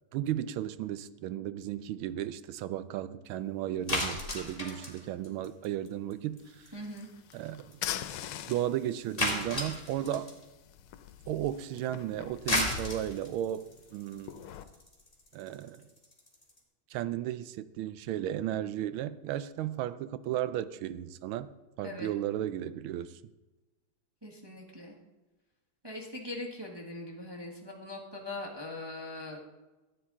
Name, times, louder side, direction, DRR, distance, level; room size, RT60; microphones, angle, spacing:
voice 1, 0.1-6.7 7.3-7.8 8.5-10.3 11.3-13.7 13.9-14.4 15.3-15.8 16.9-21.5 21.8-23.2, right 12 dB, 80° right, 14 dB, 1.4 m, -34 dB
sound 1, 3.9-6.1 6.4-6.7 7.0-7.1 7.3-7.4 7.7-7.8 8.2-8.3 9.2-10.4 12.2-16.6, left 1 dB, 20° left, 2.1 m, -33 dB
sound 2, 6.4-14.6, left 11 dB, 85° left, 1.5 m, -44 dB
voice 2, 6.7-7.1 21.8-22.1 24.2-24.9 25.8-29.4, left 2 dB, 15° right, -1 dB, 1.0 m, -41 dB
14.0 x 9.3 x 3.7 m, 1.1 s
omnidirectional pair, 2.3 m